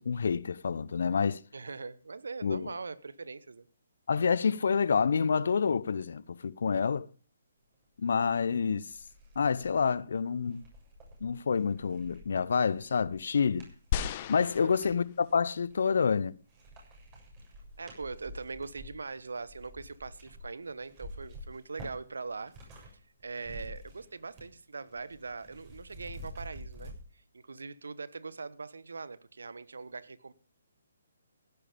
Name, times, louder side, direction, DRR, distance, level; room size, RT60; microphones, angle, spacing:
voice 1, 0.0-1.4 2.4-2.7 4.1-7.1 8.0-8.9 9.4-10.6 11.2-13.7 14.3-16.3, left 6 dB, 65° left, 0.8 m, -28 dB
voice 2, 1.5-3.7 14.6-14.8 17.8-22.5 23.2-30.3, right 4 dB, 75° right, 1.3 m, -41 dB
sound 1, 8.8-15.0 15.6-16.2 16.5-22.9 23.2-24.6 24.9-27.0, equal, 25° right, 7.0 m, -49 dB
sound 2, 13.9-15.4 16.2-16.3, left 10 dB, 35° left, 1.1 m, -35 dB
16.0 x 11.0 x 5.1 m
figure-of-eight pair, 140°, 0 cm